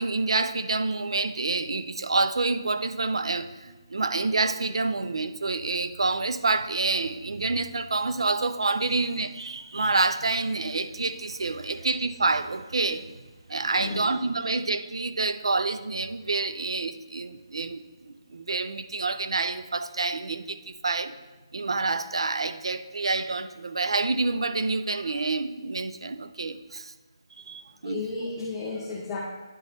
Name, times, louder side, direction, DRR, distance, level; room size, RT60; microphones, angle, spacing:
voice 1, 0.0-13.1 13.5-21.1 21.5-26.9 27.5-28.0, right 3 dB, 75° right, 11 dB, 0.5 m, -28 dB
voice 2, 13.6-14.1 27.8-29.2, left 3 dB, 5° left, -8 dB, 0.5 m, -34 dB
9.7 x 4.1 x 3.3 m, 1.2 s
hypercardioid pair, 180°, 3 cm